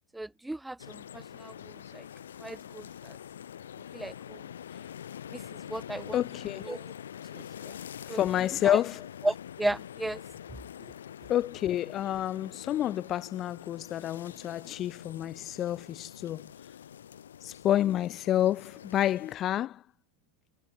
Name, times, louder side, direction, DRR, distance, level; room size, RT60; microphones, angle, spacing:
voice 1, 0.1-2.1 2.4-3.2 3.9-4.4 5.3-5.4 5.7-6.2 6.6-6.9 7.3-7.7 8.1-8.2 8.6-8.8 9.2-10.2, right 2 dB, 5° right, 1.1 m, -35 dB
sound 1, 0.8-19.3, left 9 dB, 70° left, 4.9 m, -45 dB
voice 2, 6.1-6.6 8.1-9.0 11.3-16.4 17.4-19.8, left 12 dB, 30° left, 1.2 m, -29 dB
figure-of-eight pair, 95°, 0 cm